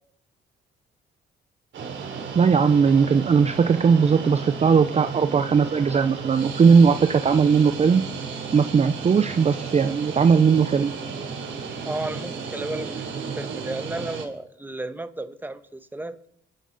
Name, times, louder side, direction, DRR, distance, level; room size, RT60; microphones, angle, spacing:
sound 1, 1.7-14.3, right 5 dB, 70° right, 3.2 m, -34 dB
voice 1, 2.3-8.0 8.5-10.9, right 6 dB, 35° right, 11 dB, 0.7 m, -18 dB
voice 2, 11.8-16.2, right 2 dB, 10° right, 10 dB, 1.2 m, -33 dB
26.5 x 11.0 x 4.1 m, 0.67 s
cardioid pair, 90°, 20 cm